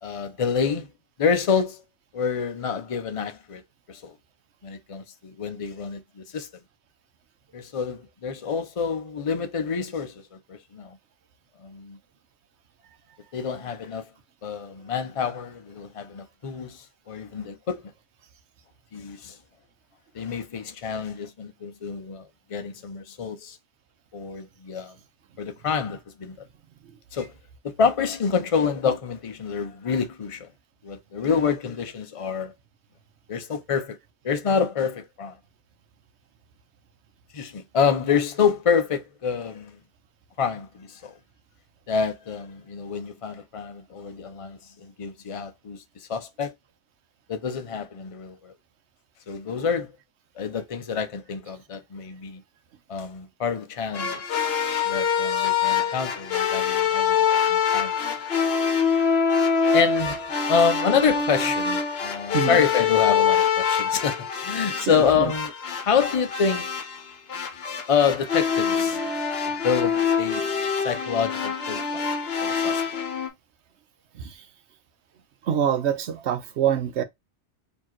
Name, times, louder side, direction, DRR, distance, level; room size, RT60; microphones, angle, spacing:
voice 1, 0.0-0.9 1.2-1.8 2.1-3.6 3.9-4.1 4.6-6.5 7.5-10.2 10.5-11.0 11.6-12.0 13.3-14.1 14.4-17.8 18.9-19.4 20.1-23.6 24.1-24.9 25.4-26.3 27.1-27.3 27.6-30.5 30.8-32.5 33.3-34.0 34.2-35.4 37.3-39.8 40.4-41.1 41.9-46.5 47.3-48.5 49.3-49.9 50.4-52.4 52.9-54.3 54.9-57.2 57.5-57.9 59.7-66.7 67.9-70.5 70.8-72.1 72.4-72.8, left 6 dB, 35° left, 0.6 m, -27 dB
sound 1, 53.9-73.3, left 6 dB, 65° left, 1.1 m, -25 dB
voice 2, 64.8-65.3 74.1-74.3 75.5-77.0, right 9 dB, 75° right, 1.0 m, -25 dB
4.3 x 3.0 x 2.9 m
omnidirectional pair, 1.2 m